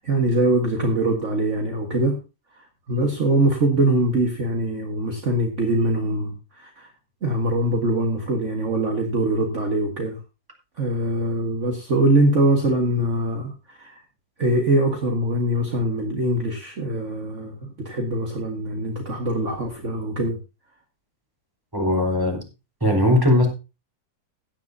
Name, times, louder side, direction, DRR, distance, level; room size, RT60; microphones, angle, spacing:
voice 1, 0.0-2.2 2.5-6.9 7.2-10.2 10.8-14.0 14.4-20.4, right 1 dB, 45° right, 3 dB, 2.0 m, -23 dB
voice 2, 21.7-22.4 22.8-23.5, left 1 dB, 10° right, 1 dB, 4.4 m, -19 dB
16.5 x 10.0 x 2.7 m, 0.29 s
omnidirectional pair, 1.7 m